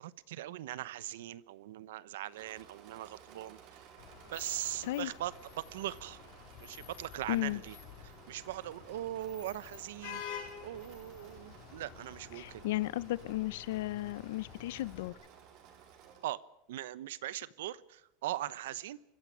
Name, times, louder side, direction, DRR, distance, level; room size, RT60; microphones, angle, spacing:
voice 1, 0.0-3.9 4.3-6.2 6.6-7.8 8.0-12.7 16.2-16.4 16.7-19.0, right 14 dB, 85° right, 18 dB, 1.0 m, -40 dB
Engine / Mechanisms, 2.2-16.4, right 8 dB, 45° right, 4.7 m, -57 dB
Vehicle horn car horn honking / Traffic noise roadway noise, 4.0-15.1, left 9 dB, 60° left, 5.4 m, -50 dB
voice 2, 7.3-7.6 12.4-15.2, left 16 dB, 75° left, 20 dB, 0.9 m, -34 dB
25.0 x 15.0 x 9.3 m, 0.88 s
supercardioid pair, 155°, 0 cm